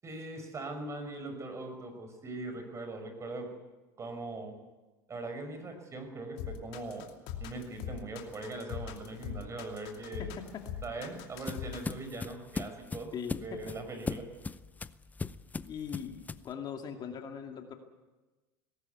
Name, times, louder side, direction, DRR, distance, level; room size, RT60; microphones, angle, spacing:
voice 1, 0.0-3.5 4.0-4.5 5.1-7.1 7.4-10.3 10.8-13.1 13.4-14.3, right 2 dB, 25° right, 6 dB, 5.9 m, -40 dB
sound 1, 6.4-12.0, left 9 dB, 65° left, 2.7 m, -41 dB
sound 2, 10.5-16.5, left 4 dB, 15° left, 0.6 m, -39 dB
voice 2, 13.1-13.6 15.7-17.7, left 7 dB, 40° left, 4 dB, 2.5 m, -40 dB
19.5 x 18.0 x 9.5 m, 1.2 s
hypercardioid pair, 95°, 11 cm